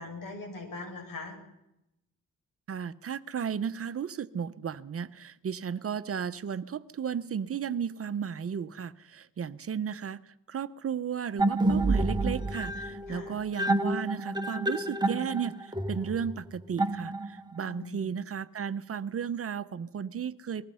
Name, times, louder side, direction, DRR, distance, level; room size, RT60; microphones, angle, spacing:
voice 1, 0.0-1.4 13.1-13.4 17.7-18.0, left 2 dB, 80° left, 4 dB, 7.3 m, -41 dB
voice 2, 2.7-20.7, right 7 dB, 45° right, 13 dB, 0.8 m, -34 dB
sound 1, 11.4-17.6, right 2 dB, 15° right, 1.1 m, -29 dB
27.0 x 20.5 x 5.6 m, 0.87 s
cardioid pair, 130°, 33 cm